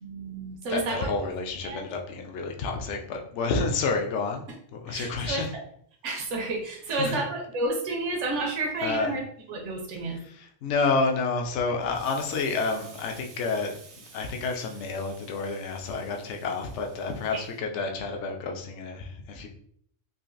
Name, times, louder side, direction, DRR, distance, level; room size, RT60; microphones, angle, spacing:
voice 1, 0.0-1.1 1.6-1.8 4.9-5.4 6.0-10.2 17.3-17.4, right 2 dB, 70° right, 0 dB, 1.0 m, -31 dB
voice 2, 0.7-4.4 4.7-5.5 6.9-7.2 8.8-9.1 10.2-19.5, left 4 dB, 70° left, 3 dB, 0.8 m, -29 dB
Explosion, 11.8-17.6, right 4 dB, 90° right, 1.1 m, -50 dB
3.8 x 2.4 x 2.5 m, 0.63 s
omnidirectional pair, 1.3 m